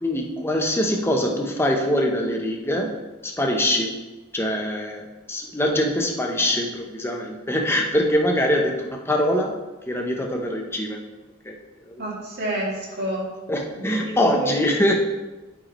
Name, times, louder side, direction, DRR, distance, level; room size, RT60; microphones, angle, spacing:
voice 1, 0.0-4.0 4.3-11.0 11.4-11.6 11.9-12.1 13.5-14.9, left 1 dB, 10° left, 1 dB, 0.8 m, -23 dB
voice 2, 12.0-13.2 13.8-14.6, right 1 dB, 50° right, -4 dB, 2.4 m, -29 dB
8.5 x 7.8 x 3.1 m, 1.1 s
head